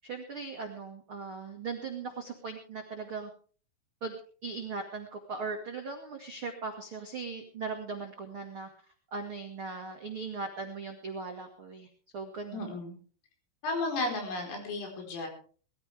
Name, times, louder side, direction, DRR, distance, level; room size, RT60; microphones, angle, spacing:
voice 1, 0.0-3.3 4.0-4.1 4.4-8.7 9.1-11.9 12.1-12.7, right 4 dB, 75° right, 2 dB, 1.2 m, -39 dB
voice 2, 12.5-13.0 13.6-15.3, left 2 dB, 85° left, 2 dB, 7.2 m, -33 dB
20.5 x 14.5 x 3.5 m, 0.42 s
omnidirectional pair, 5.8 m